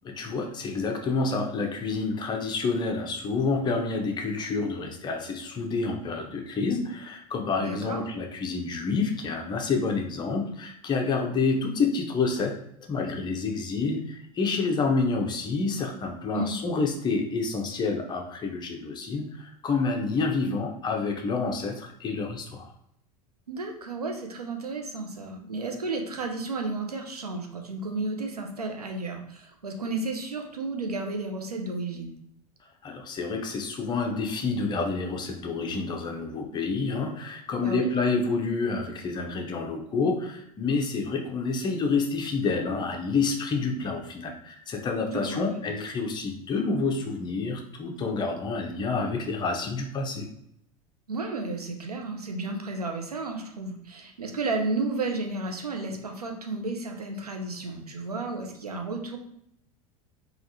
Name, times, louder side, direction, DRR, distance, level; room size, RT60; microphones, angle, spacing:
voice 1, 0.0-12.5 12.8-22.7 32.8-50.3, left 4 dB, 25° left, 2 dB, 0.6 m, -28 dB
voice 2, 7.6-8.0 16.3-16.5 23.5-32.1 37.6-37.9 45.1-45.6 51.1-59.2, right 3 dB, 90° right, 3 dB, 0.5 m, -32 dB
3.4 x 2.3 x 2.7 m, 0.74 s
figure-of-eight pair, 80°, 19 cm